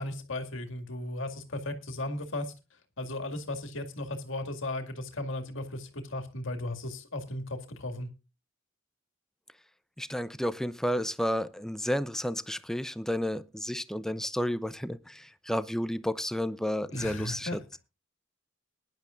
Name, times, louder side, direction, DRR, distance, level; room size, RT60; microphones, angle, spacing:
voice 1, 0.0-2.5 3.0-8.1 16.9-17.6, left 1 dB, 70° left, 2.1 m, -36 dB
voice 2, 10.0-17.8, equal, ahead, 0.5 m, -32 dB
21.0 x 10.5 x 2.5 m
head